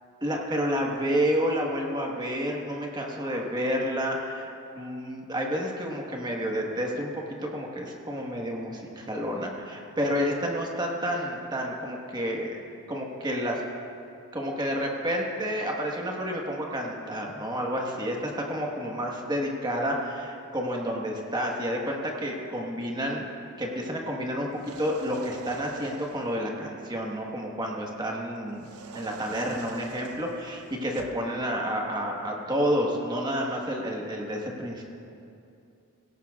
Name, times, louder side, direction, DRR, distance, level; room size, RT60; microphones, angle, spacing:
voice 1, 0.2-7.1 7.4-12.6 12.9-13.6 14.3-23.2 23.6-24.5 24.8-34.8, equal, 20° right, 0 dB, 1.4 m, -30 dB
sound 1, 24.5-26.4 28.6-31.3, right 5 dB, 80° right, 0.6 m, -44 dB
17.5 x 17.0 x 2.4 m, 2.7 s
head